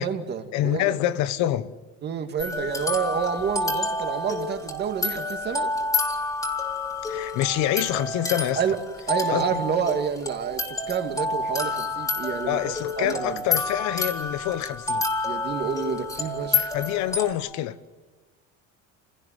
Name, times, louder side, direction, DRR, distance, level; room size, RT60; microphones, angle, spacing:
voice 1, 0.0-1.0 2.0-5.7 8.6-8.8 9.1-13.4 15.2-16.7, right 7 dB, 35° right, 2.3 m, -29 dB
voice 2, 0.5-1.7 7.1-8.6 9.3-9.6 12.5-15.0 16.7-17.9, left 13 dB, 70° left, 1.3 m, -26 dB
sound 1, 2.4-17.3, left 3 dB, 10° left, 3.1 m, -29 dB
28.5 x 17.0 x 9.4 m
cardioid pair, 160°, 30 cm